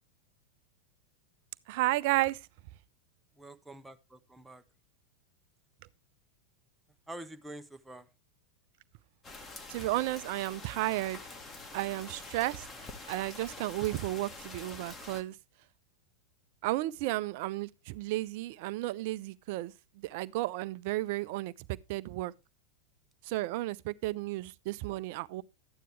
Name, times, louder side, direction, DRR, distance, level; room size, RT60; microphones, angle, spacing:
voice 1, 1.7-2.4 9.7-11.2 11.7-12.6 13.1-15.3 16.6-22.3 23.2-25.4, right 18 dB, 50° right, 0.5 m, -33 dB
voice 2, 3.4-4.6 7.1-8.1, right 1 dB, 5° right, 0.9 m, -47 dB
sound 1, 9.2-15.2, left 3 dB, 20° left, 1.6 m, -46 dB
12.5 x 9.3 x 3.3 m
figure-of-eight pair, 90°, 0 cm